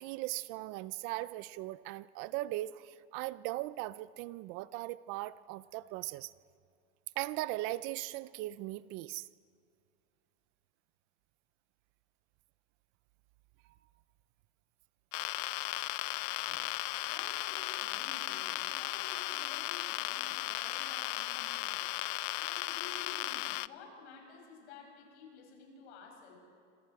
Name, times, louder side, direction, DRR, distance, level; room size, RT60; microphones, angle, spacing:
voice 1, 0.0-6.3 7.2-9.3 16.5-16.7, right 17 dB, 40° right, 17 dB, 0.5 m, -39 dB
sound 1, 15.1-23.7, left 21 dB, 55° left, 0.5 m, -36 dB
voice 2, 17.0-21.9 22.3-26.4, left 4 dB, 75° left, 1 dB, 7.4 m, -52 dB
28.0 x 26.5 x 4.8 m, 2.4 s
supercardioid pair, 155°, 34 cm